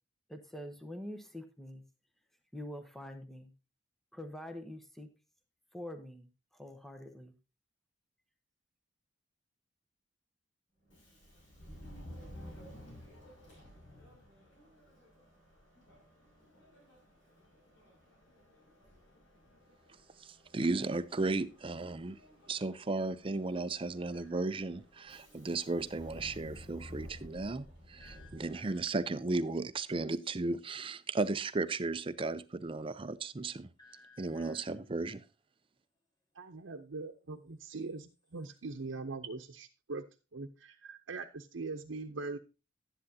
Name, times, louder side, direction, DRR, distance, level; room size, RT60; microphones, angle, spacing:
voice 1, 0.3-1.8 2.5-3.5 4.1-5.1 5.7-7.3, left 1 dB, ahead, 0.9 m, -45 dB
Subway metro underground, 10.8-29.2, equal, 80° left, 6.5 m, -54 dB
voice 2, 20.2-22.2 22.5-33.7 34.2-35.2, right 3 dB, 30° right, 0.5 m, -35 dB
sound 1, 24.1-24.6 28.0-29.2 33.8-34.9 37.7-38.6, left 3 dB, 20° left, 1.7 m, -62 dB
voice 3, 36.3-40.0 40.3-42.4, right 3 dB, 85° right, 0.7 m, -42 dB
12.0 x 10.0 x 2.8 m
head